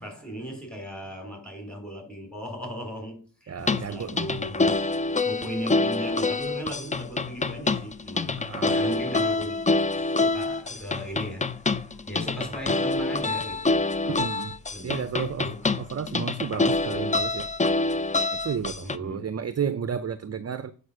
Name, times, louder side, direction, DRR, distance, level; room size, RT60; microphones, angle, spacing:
voice 1, 0.0-4.9 5.2-9.6 9.9-13.8 14.7-15.7 18.8-19.3, right 1 dB, ahead, 3.1 m, -37 dB
voice 2, 3.5-4.2 8.4-8.9 14.1-14.6 14.8-15.5 15.8-17.5 18.3-20.7, right 7 dB, 35° right, 0.5 m, -32 dB
sound 1, 3.6-19.0, left 3 dB, 20° left, 0.3 m, -26 dB
8.3 x 5.1 x 6.2 m
wide cardioid pair, 130°, 48 cm